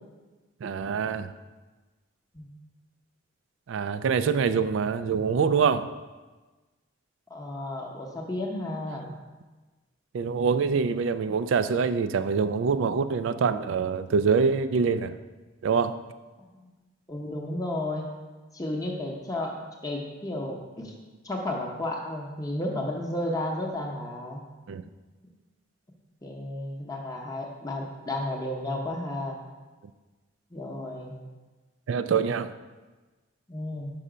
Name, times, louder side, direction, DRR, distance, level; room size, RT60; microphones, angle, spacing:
voice 1, 0.6-1.3 3.7-5.9 10.1-15.1 15.6-15.9 24.7-24.8 31.9-32.5, right 5 dB, 75° right, 12 dB, 0.3 m, -25 dB
voice 2, 7.3-9.1 16.6-16.7 17.1-18.1 18.5-19.5 19.8-20.9 21.2-24.4 26.2-29.4 30.5-31.1 33.5-33.9, left 1 dB, 20° left, 0 dB, 0.7 m, -32 dB
5.6 x 5.4 x 4.9 m, 1.3 s
head